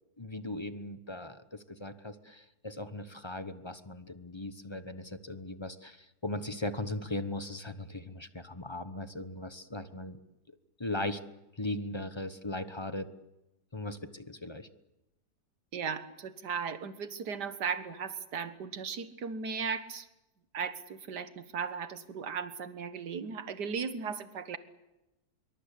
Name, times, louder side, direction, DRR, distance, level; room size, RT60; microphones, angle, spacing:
voice 1, 0.2-10.2 10.8-11.2 11.6-13.1 13.7-14.7, left 2 dB, 20° left, 11 dB, 0.9 m, -38 dB
voice 2, 15.7-20.1 20.5-24.6, right 6 dB, 80° right, 11 dB, 2.1 m, -36 dB
25.5 x 23.5 x 8.4 m, 0.95 s
omnidirectional pair, 1.7 m